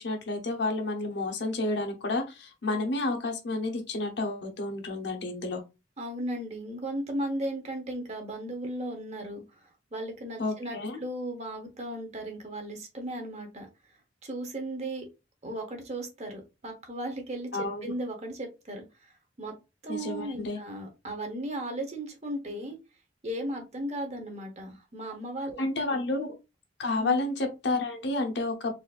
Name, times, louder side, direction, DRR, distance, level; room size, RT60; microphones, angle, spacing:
voice 1, 0.0-5.6 10.4-11.0 17.5-17.9 19.9-20.6 25.6-26.3 26.8-28.7, left 2 dB, 65° left, 4 dB, 0.8 m, -30 dB
voice 2, 6.0-9.6 9.9-13.7 14.2-15.1 15.4-19.5 19.8-22.8 23.2-25.6 25.9-26.0 26.9-27.2, right 1 dB, 40° right, 3 dB, 1.0 m, -36 dB
4.1 x 2.5 x 2.4 m, 0.26 s
head